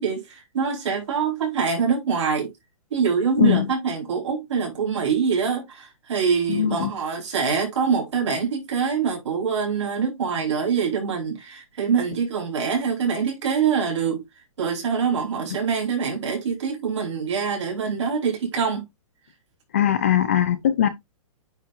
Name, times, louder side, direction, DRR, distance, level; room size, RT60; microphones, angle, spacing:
voice 1, 0.0-2.5 2.9-14.2 14.6-18.8, right 6 dB, 55° right, 4.4 m, -24 dB
voice 2, 6.5-6.9 19.7-20.9, left 10 dB, 25° left, 0.4 m, -20 dB
9.2 x 4.3 x 2.6 m
hypercardioid pair, 180°, 18 cm